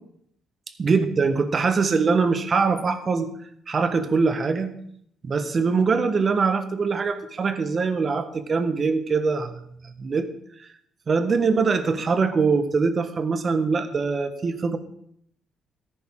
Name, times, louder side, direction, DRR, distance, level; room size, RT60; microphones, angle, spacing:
voice 1, 0.8-3.3 3.7-4.7 5.2-10.3 11.1-14.8, right 4 dB, 40° right, 10 dB, 1.3 m, -23 dB
14.0 x 10.5 x 3.8 m, 0.70 s
cardioid pair, 95°, 0 cm